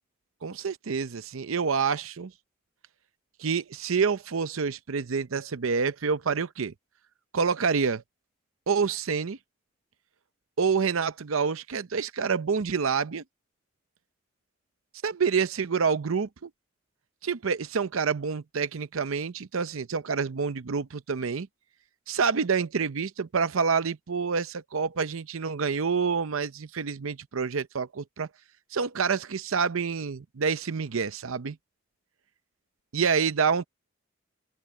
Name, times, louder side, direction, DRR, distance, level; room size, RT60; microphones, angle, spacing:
voice 1, 0.4-2.3 3.4-6.7 7.3-8.0 8.7-9.4 10.6-13.2 15.0-16.5 17.2-21.5 22.1-28.3 28.7-31.6 32.9-33.6, right 5 dB, 80° right, 0.6 m, -27 dB
open air
head